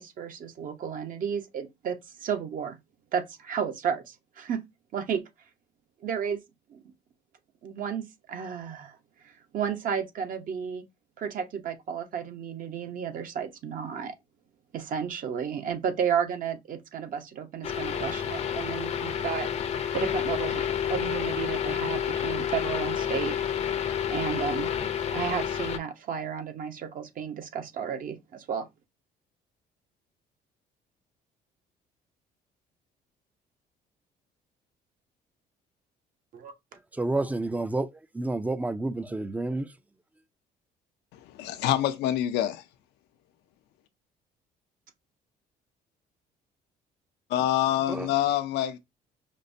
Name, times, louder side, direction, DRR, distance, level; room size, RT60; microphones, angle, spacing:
voice 1, 0.0-2.8 3.1-4.6 4.9-5.2 6.0-6.4 6.7-6.8 7.6-8.9 9.5-10.8 11.2-14.1 14.7-19.5 19.9-20.6 20.9-23.4 24.1-24.7 25.1-28.7 36.3-36.5, right 7 dB, 55° right, 0.8 m, -32 dB
sound 1, 17.6-25.8, left 8 dB, 40° left, 0.6 m, -29 dB
voice 2, 37.0-37.9 38.1-39.7 47.9-48.1, right 2 dB, 10° right, 0.4 m, -29 dB
voice 3, 41.1-42.6 47.3-48.8, left 12 dB, 80° left, 0.5 m, -26 dB
5.2 x 2.1 x 2.6 m
cardioid pair, 110°, 17 cm